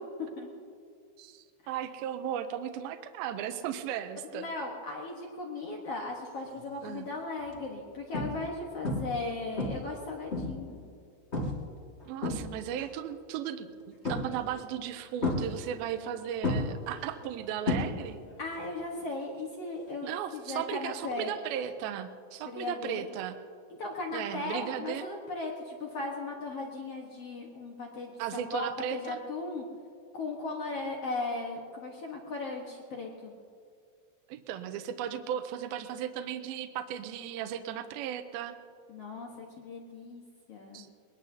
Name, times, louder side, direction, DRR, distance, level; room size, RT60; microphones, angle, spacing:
voice 1, 0.2-0.5 4.3-10.8 18.4-21.3 22.4-23.1 23.8-28.2 28.5-29.6 30.1-33.3 38.9-40.2 40.5-40.8, left 3 dB, 75° left, -1 dB, 1.4 m, -37 dB
voice 2, 1.2-4.5 6.8-7.1 12.1-18.2 20.0-23.4 24.1-25.0 28.2-29.2 34.3-38.6 40.7-40.9, right 9 dB, 80° right, 7 dB, 2.2 m, -36 dB
sound 1, 6.5-6.8 7.4-7.5 8.1-8.6 8.8-9.2 9.6-10.7 11.3-11.7 12.0-12.8 14.0-14.6 15.2-16.1 16.4-18.3 18.6-19.0 21.1-21.2, left 2 dB, 40° left, 0.9 m, -32 dB
21.5 x 20.0 x 2.8 m, 2.3 s
omnidirectional pair, 4.9 m